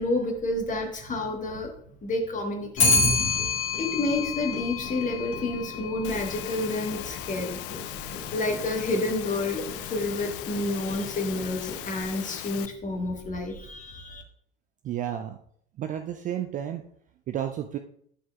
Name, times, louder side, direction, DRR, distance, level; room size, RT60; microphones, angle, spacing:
voice 1, 0.0-1.7 2.0-2.9 3.8-7.6 8.3-14.2, left 2 dB, 25° left, 3 dB, 1.4 m, -29 dB
Clock, 2.8-12.1, left 3 dB, 40° left, 1.9 m, -30 dB
Engine / Mechanisms, 6.0-12.7, left 14 dB, 55° left, 0.5 m, -38 dB
voice 2, 14.8-15.4 15.8-16.8 17.3-17.8, right 10 dB, 25° right, 7 dB, 0.4 m, -31 dB
11.0 x 6.1 x 2.4 m, 0.64 s
figure-of-eight pair, 75°, 33 cm